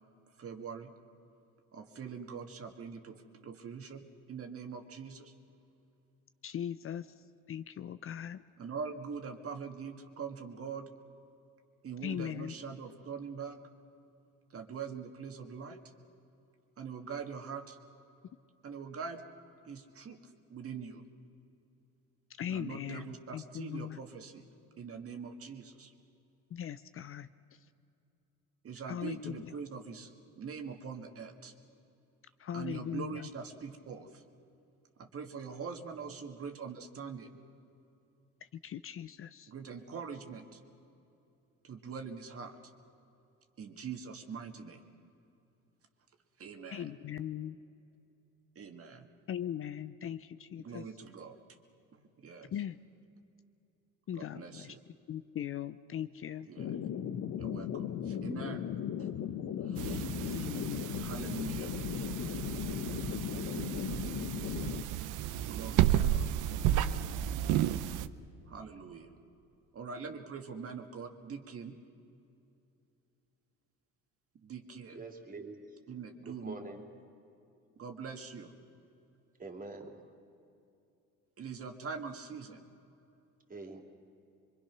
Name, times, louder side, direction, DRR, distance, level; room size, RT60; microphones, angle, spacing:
voice 1, 0.4-0.9 1.7-5.4 8.6-10.9 11.8-13.6 14.5-15.8 16.8-17.8 18.6-19.2 19.7-21.0 22.5-24.5 24.8-25.9 28.6-31.5 32.5-34.2 35.0-37.4 39.5-40.6 41.6-42.6 43.6-44.8 46.4-46.9 48.6-49.1 50.6-51.4 51.9-52.5 54.2-54.8 56.5-56.7 57.4-58.7 59.0-59.1 59.6-60.1 60.8-61.8 65.5-66.3 68.5-69.2 69.7-71.8 74.3-75.0 75.9-76.6 77.8-78.5 81.4-82.6, right 6 dB, 45° right, 4 dB, 1.9 m, -43 dB
voice 2, 6.4-7.1 7.5-8.4 12.0-12.5 22.4-24.0 26.5-27.3 28.9-29.5 32.4-33.3 38.6-39.5 46.7-47.6 49.3-50.8 52.5-52.8 54.1-54.7 55.1-56.5 60.3-60.9, left 10 dB, 40° left, 13 dB, 0.6 m, -39 dB
sound 1, 56.6-64.8, left 9 dB, 60° left, 1.1 m, -37 dB
sound 2, 59.8-68.1, right 11 dB, 70° right, 0.8 m, -32 dB
voice 3, 74.9-75.6 76.3-76.8 79.4-80.0 83.5-83.8, right 3 dB, 25° right, 3 dB, 2.9 m, -45 dB
24.0 x 23.0 x 6.0 m, 2.7 s
cardioid pair, 95°, 32 cm